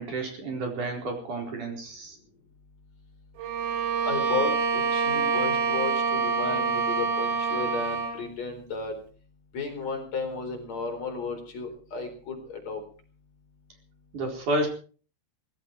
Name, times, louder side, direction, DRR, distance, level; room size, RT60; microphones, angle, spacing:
voice 1, 0.0-2.2 14.1-14.7, right 2 dB, 40° right, 2 dB, 5.4 m, -30 dB
Bowed string instrument, 3.4-8.2, right 5 dB, 80° right, 5.3 m, -26 dB
voice 2, 4.1-8.9 9.5-12.8, left 4 dB, 35° left, 4 dB, 4.8 m, -33 dB
18.5 x 16.5 x 4.7 m, 0.40 s
omnidirectional pair, 5.9 m